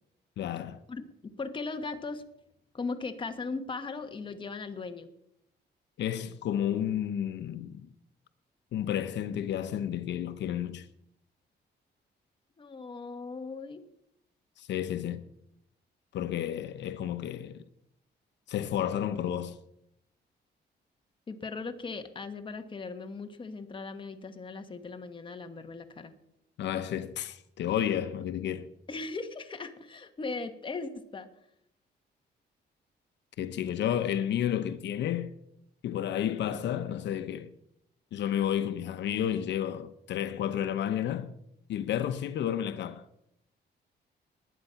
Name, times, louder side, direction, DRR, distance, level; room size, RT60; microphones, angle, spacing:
voice 1, 0.4-0.8 6.0-7.9 8.7-10.9 14.6-15.2 16.1-17.6 18.5-19.6 26.6-28.7 33.4-35.3 35.8-37.5 38.1-41.3 41.7-43.1, left 10 dB, 80° left, 0.8 m, -31 dB
voice 2, 0.9-2.2 2.7-5.1 12.6-13.8 21.3-26.1 28.9-31.3, left 4 dB, 30° left, 1.4 m, -38 dB
20.0 x 9.1 x 5.8 m
cardioid pair, 135°, 18 cm